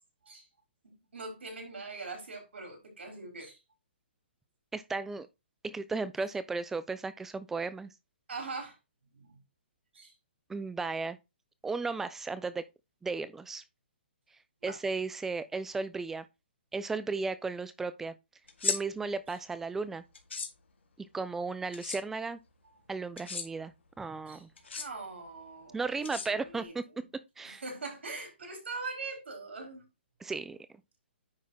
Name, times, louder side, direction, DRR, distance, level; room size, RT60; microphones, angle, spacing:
voice 1, 0.8-3.6 8.3-8.8 9.1-9.4 9.9-10.1 14.6-14.8 24.3-24.4 24.8-26.7 27.4-29.9, right 3 dB, 85° right, 4.6 m, -42 dB
voice 2, 4.7-5.3 5.6-7.9 10.5-11.2 11.6-12.6 13.0-13.6 14.6-16.3 16.7-18.1 18.6-20.0 21.0-22.4 22.9-24.5 25.7-26.8 27.4-27.6 30.2-30.6, right 4 dB, 5° right, 0.5 m, -35 dB
sound 1, 18.5-18.8 20.1-20.5 21.7-22.0 23.2-23.5 24.6-24.9 26.0-26.6, left 6 dB, 85° left, 2.0 m, -34 dB
9.6 x 3.6 x 4.2 m
hypercardioid pair, 160°, 6 cm